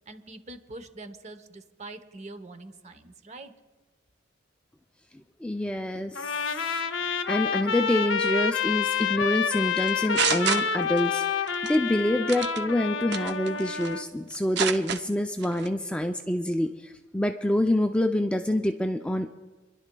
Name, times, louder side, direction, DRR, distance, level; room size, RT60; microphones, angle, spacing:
voice 1, 0.1-3.5, right 2 dB, 35° right, 9 dB, 0.9 m, -44 dB
voice 2, 5.4-19.3, left 1 dB, 5° left, 5 dB, 0.4 m, -27 dB
Trumpet, 6.2-14.1, left 6 dB, 75° left, 0.6 m, -28 dB
sound 1, 9.8-11.2 11.5-11.8 12.3-12.6 13.1-14.0 14.3-15.0 15.4-15.7, right 7 dB, 60° right, 0.6 m, -28 dB
28.0 x 11.5 x 2.3 m, 1.2 s
head